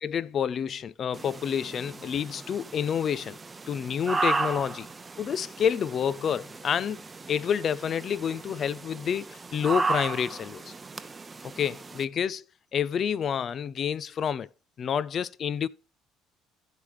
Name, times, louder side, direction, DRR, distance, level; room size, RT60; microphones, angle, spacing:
voice 1, 0.0-3.4 3.7-4.9 5.2-10.7 11.4-12.4 12.7-14.5 14.8-15.7, left 8 dB, 45° left, 0.5 m, -29 dB
sound 1, 1.1-12.0, right 3 dB, 20° right, 0.7 m, -35 dB
15.0 x 5.0 x 3.1 m
supercardioid pair, 90°, 0 cm